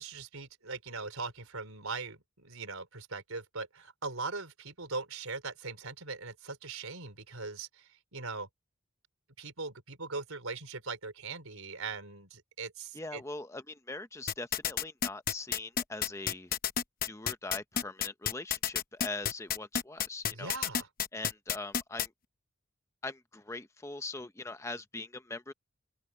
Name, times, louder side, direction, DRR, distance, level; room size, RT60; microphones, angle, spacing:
voice 1, 0.0-8.5 9.4-13.2 20.3-20.9, right 4 dB, 85° right, 4.3 m, -40 dB
voice 2, 12.9-16.5 17.1-20.5 21.1-22.1 23.0-25.5, left 2 dB, 15° left, 0.8 m, -42 dB
sound 1, 14.3-22.1, left 8 dB, 40° left, 1.0 m, -30 dB
open air
head